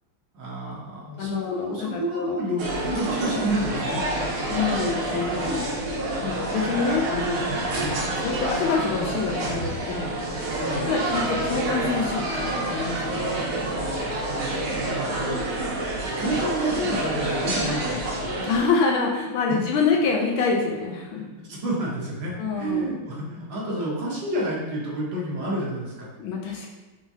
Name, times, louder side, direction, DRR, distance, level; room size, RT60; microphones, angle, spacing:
voice 1, 0.3-4.0 7.8-8.0 10.6-10.9 14.3-15.9 16.2-18.2 19.5-19.6 21.1-26.1, right 1 dB, 65° right, -5 dB, 1.5 m, -30 dB
voice 2, 1.2-2.4 4.5-5.6 6.2-7.6 8.2-10.1 10.8-13.2 18.4-21.2 22.4-22.9 26.2-26.7, left 4 dB, 75° left, 0 dB, 1.3 m, -26 dB
sound 1, 2.6-18.6, right 1 dB, 85° right, 1.9 m, -28 dB
4.6 x 3.6 x 2.7 m, 1.2 s
omnidirectional pair, 2.4 m